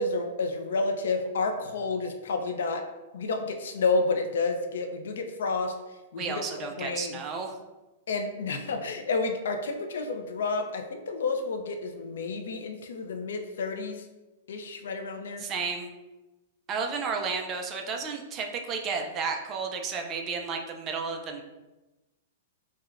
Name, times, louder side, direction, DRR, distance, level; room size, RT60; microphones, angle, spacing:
voice 1, 0.0-2.8 3.1-5.7 6.1-6.3 6.6-7.2 8.1-14.0 14.5-15.4, left 3 dB, 80° left, 5 dB, 0.4 m, -30 dB
voice 2, 6.2-7.5 15.4-15.9 16.7-21.4, right 5 dB, 20° right, 3 dB, 0.3 m, -32 dB
4.6 x 2.1 x 2.4 m, 1.1 s
supercardioid pair, 170°, 0 cm